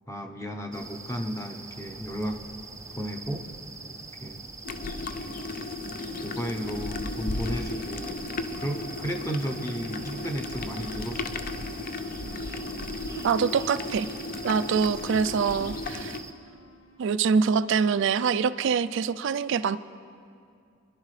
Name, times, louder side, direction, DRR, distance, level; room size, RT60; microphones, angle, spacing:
voice 1, 0.1-2.4 2.9-3.4 4.2-4.4 6.2-8.2 8.6-11.4, equal, 15° left, 3 dB, 0.8 m, -33 dB
sound 1, 0.7-16.3, right 3 dB, 15° right, 0.6 m, -43 dB
sound 2, 4.6-16.2, left 2 dB, 45° left, 0.5 m, -35 dB
sound 3, 8.9-18.0, right 4 dB, 85° left, 1.1 m, -55 dB
voice 2, 13.2-14.1 14.4-16.2 17.0-19.8, right 6 dB, 65° right, 14 dB, 0.4 m, -24 dB
24.0 x 11.5 x 3.3 m, 2.3 s
head